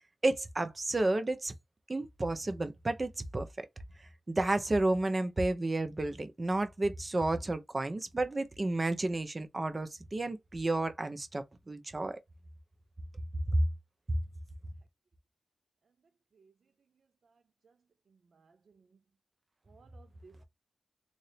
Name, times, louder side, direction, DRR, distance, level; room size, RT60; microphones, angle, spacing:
voice 1, 0.2-1.5 1.9-3.7 4.3-12.2 13.5-13.7 14.1-14.2, right 2 dB, 40° right, 0.9 m, -31 dB
voice 2, 18.3-18.9 19.7-20.4, right 4 dB, 75° right, 0.4 m, -60 dB
4.0 x 2.7 x 3.3 m
cardioid pair, 45°, 0 cm